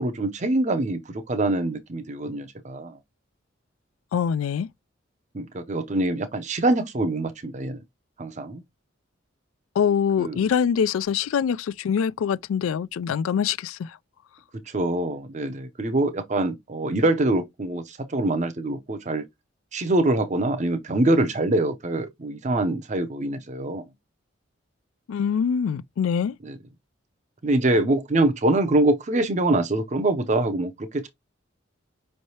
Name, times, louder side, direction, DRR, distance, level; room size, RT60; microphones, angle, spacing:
voice 1, 0.0-2.9 5.3-7.8 8.2-8.6 10.2-10.4 14.7-19.3 19.7-23.8 26.4-26.6 27.4-31.1, right 2 dB, 35° right, 0.6 m, -24 dB
voice 2, 4.1-4.7 9.8-13.9 25.1-26.3, left 7 dB, 85° left, 0.3 m, -24 dB
5.4 x 3.2 x 2.8 m
head